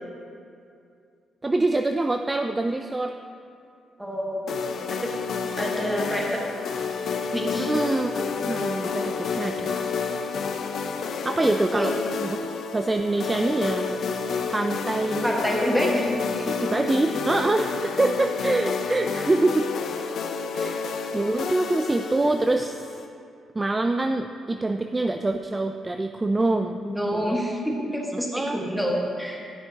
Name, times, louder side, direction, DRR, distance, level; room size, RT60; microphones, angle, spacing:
voice 1, 1.4-3.1 7.6-9.9 11.2-12.4 12.7-14.0 14.5-15.4 16.6-19.7 20.5-20.8 21.1-23.0 23.5-26.8 27.1-27.5 28.1-28.6, right 2 dB, 25° right, 6 dB, 0.3 m, -25 dB
voice 2, 4.0-5.1 5.6-6.4 7.3-7.7 11.7-11.9 13.3-13.4 15.2-16.5 26.8-29.5, equal, ahead, -2 dB, 1.4 m, -27 dB
sound 1, 4.5-23.1, left 5 dB, 70° left, 0.5 m, -30 dB
11.0 x 6.1 x 2.8 m, 2.5 s
cardioid pair, 70°, 0 cm